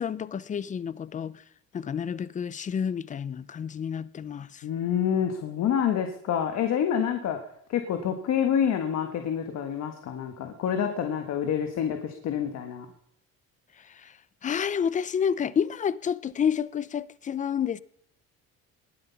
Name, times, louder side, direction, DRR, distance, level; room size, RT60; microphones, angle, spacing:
voice 1, 0.0-1.3 1.7-4.6 14.0-14.1 14.4-17.8, left 7 dB, 25° left, 0.5 m, -29 dB
voice 2, 4.6-7.4 7.7-12.9, left 8 dB, 55° left, 1.6 m, -27 dB
20.0 x 12.5 x 5.8 m
cardioid pair, 150°, 31 cm